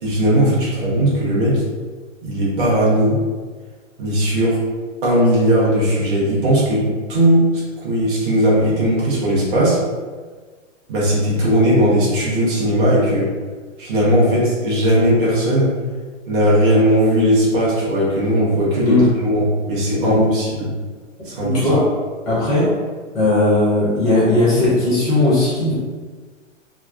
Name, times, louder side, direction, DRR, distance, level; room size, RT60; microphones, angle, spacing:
voice 1, 0.0-1.6 2.2-3.2 4.0-4.6 5.0-7.5 7.8-9.8 10.9-13.3 13.8-15.7 16.3-20.7 21.2-21.7, equal, 40° right, -7 dB, 0.9 m, -17 dB
voice 2, 20.0-20.3 21.4-21.8 22.3-22.7 23.1-25.7, left 2 dB, ahead, -10 dB, 0.5 m, -17 dB
3.0 x 2.1 x 2.4 m, 1.4 s
hypercardioid pair, 165°, 39 cm